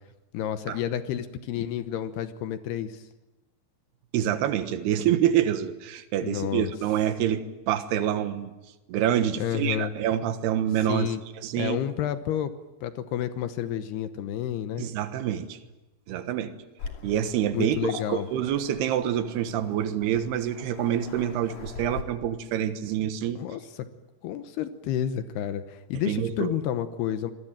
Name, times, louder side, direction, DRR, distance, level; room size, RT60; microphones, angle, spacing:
voice 1, 0.3-3.0 6.2-6.7 9.4-9.9 10.9-11.2 11.6-12.5 12.8-14.9 17.5-18.3 23.4-23.9 24.2-27.3, left 10 dB, 75° left, 10 dB, 3.0 m, -30 dB
voice 2, 4.1-8.5 8.9-11.1 11.4-11.8 14.8-15.6 16.1-16.6 17.0-23.4 26.1-26.6, right 10 dB, 75° right, 10 dB, 3.3 m, -27 dB
Waves surf, 16.8-22.0, left 4 dB, 45° left, 3.8 m, -42 dB
27.0 x 21.0 x 9.0 m, 1.0 s
omnidirectional pair, 4.8 m